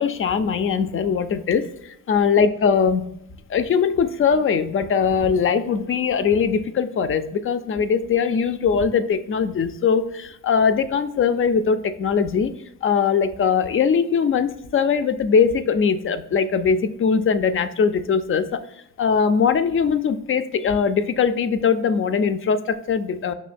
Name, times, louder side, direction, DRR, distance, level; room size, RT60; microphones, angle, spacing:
voice 1, 0.0-3.1 3.5-12.5 12.8-18.6 19.0-23.3, left 6 dB, 35° left, 10 dB, 0.4 m, -21 dB
5.4 x 2.7 x 2.5 m, 0.79 s
supercardioid pair, 70°, 39 cm